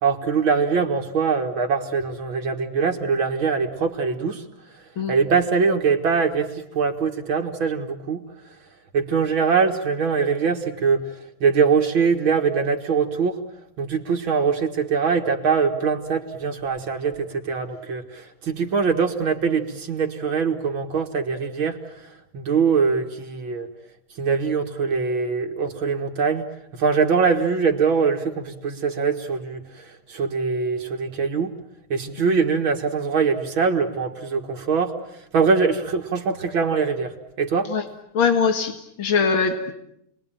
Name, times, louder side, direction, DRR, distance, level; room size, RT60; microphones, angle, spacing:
voice 1, 0.0-4.4 5.1-8.3 8.9-13.4 13.8-23.7 24.2-31.5 31.9-37.7, right 5 dB, 75° right, 2 dB, 2.5 m, -23 dB
voice 2, 38.1-39.7, left 5 dB, 80° left, 6 dB, 2.7 m, -21 dB
30.0 x 21.5 x 8.9 m, 0.77 s
omnidirectional pair, 2.2 m